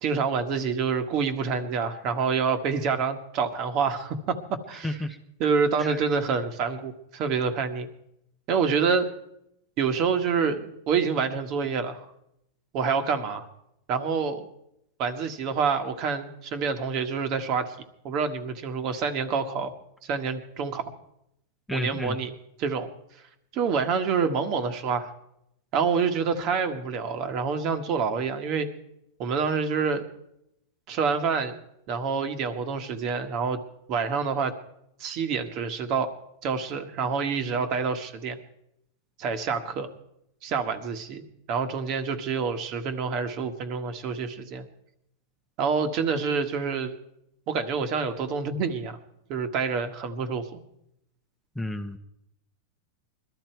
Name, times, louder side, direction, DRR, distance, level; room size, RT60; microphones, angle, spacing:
voice 1, 0.0-5.0 5.4-7.9 8.5-9.1 9.8-12.1 12.7-13.4 13.9-14.5 15.0-17.7 18.0-19.7 20.0-20.9 21.7-22.9 23.5-25.1 25.7-28.7 29.2-30.0 30.9-31.5 31.9-33.6 33.9-34.6 35.0-36.1 36.4-38.4 39.2-39.9 40.4-41.2 41.5-44.7 45.6-46.9 47.5-49.0 49.3-50.6, right 5 dB, 40° right, 8 dB, 1.6 m, -27 dB
voice 2, 4.8-5.2 5.8-5.9 21.7-22.2 51.6-52.0, left 1 dB, 5° left, 5 dB, 1.0 m, -31 dB
21.5 x 13.0 x 4.6 m, 0.79 s
supercardioid pair, 135°, 0 cm